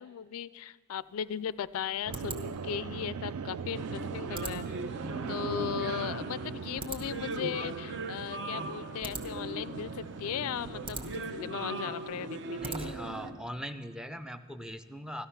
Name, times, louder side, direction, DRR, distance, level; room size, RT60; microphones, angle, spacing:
voice 1, 0.0-4.8 5.3-12.9, left 8 dB, 70° left, 18 dB, 0.3 m, -37 dB
sound 1, 1.0-13.3, right 2 dB, 25° right, 0.9 m, -46 dB
sound 2, 2.1-11.0, right 6 dB, 85° right, 0.4 m, -41 dB
sound 3, 3.7-13.3, right 2 dB, 55° right, 0.8 m, -39 dB
voice 2, 12.6-15.3, equal, 5° right, 9 dB, 0.4 m, -40 dB
13.0 x 13.0 x 5.7 m, 1.5 s
head